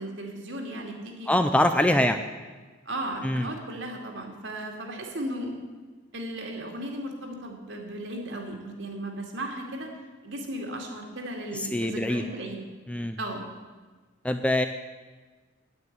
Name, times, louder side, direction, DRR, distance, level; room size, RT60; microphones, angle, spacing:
voice 1, 0.0-1.3 1.9-2.1 2.8-5.5 6.1-9.9 10.2-12.6 13.2-13.4, right 1 dB, 60° right, 1 dB, 2.4 m, -35 dB
voice 2, 1.3-2.2 3.2-3.5 11.5-12.2 12.9-13.2 14.2-14.7, left 1 dB, 5° left, 8 dB, 0.4 m, -24 dB
9.5 x 9.2 x 9.6 m, 1.3 s
head